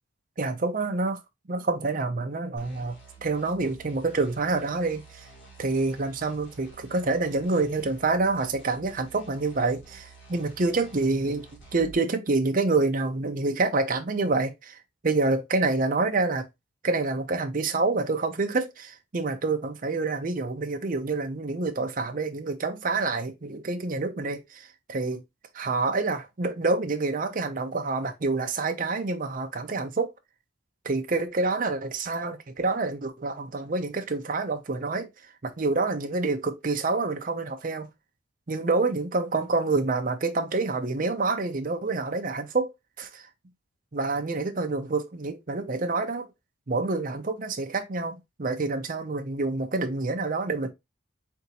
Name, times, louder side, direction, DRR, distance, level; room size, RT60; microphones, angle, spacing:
voice 1, 0.4-1.2 1.5-5.3 5.6-11.5 11.7-16.5 16.8-25.2 25.5-30.1 30.8-37.9 38.5-43.3 43.9-46.3 46.7-50.7, right 3 dB, 40° right, 0.6 m, -27 dB
sound 1, 2.6-12.0, right 3 dB, 70° left, 1.8 m, -50 dB
3.9 x 3.5 x 2.9 m
head